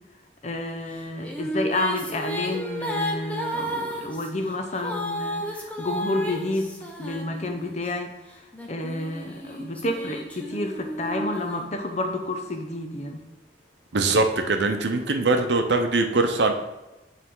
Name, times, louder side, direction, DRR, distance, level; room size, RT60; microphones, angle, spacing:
voice 1, 0.4-8.1 8.7-13.2, left 1 dB, 40° left, 5 dB, 0.7 m, -30 dB
sound 1, 0.9-7.9 8.5-12.3, equal, 10° left, 0.7 m, -33 dB
voice 2, 13.9-16.5, right 3 dB, 80° right, 6 dB, 0.7 m, -22 dB
9.4 x 3.3 x 3.7 m, 1.0 s
head